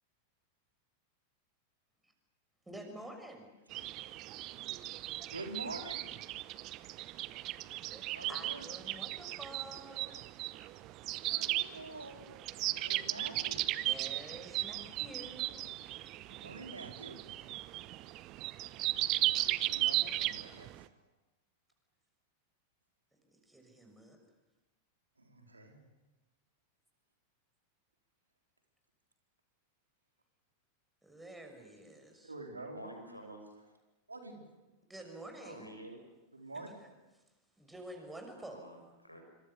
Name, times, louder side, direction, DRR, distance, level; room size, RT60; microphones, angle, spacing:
voice 1, 2.7-3.5 5.2-5.3 7.9-8.0 8.3-10.1 13.8-15.6 23.5-24.2 31.0-32.3 34.9-35.7 37.6-38.6, right 1 dB, 5° right, 4 dB, 6.3 m, -49 dB
sound 1, 3.7-20.8, right 16 dB, 40° right, 0.8 m, -36 dB
voice 2, 5.3-6.1 8.1-8.7 11.2-13.7 16.3-17.2 19.2-21.0 25.2-25.8 32.2-32.9 34.1-34.4 36.3-36.7, right 2 dB, 80° right, 3 dB, 4.1 m, -47 dB
voice 3, 32.7-33.5 35.4-36.0 38.5-39.2, right 1 dB, 90° left, 2 dB, 6.1 m, -49 dB
27.0 x 25.5 x 7.0 m, 1.1 s
figure-of-eight pair, 90°, 0 cm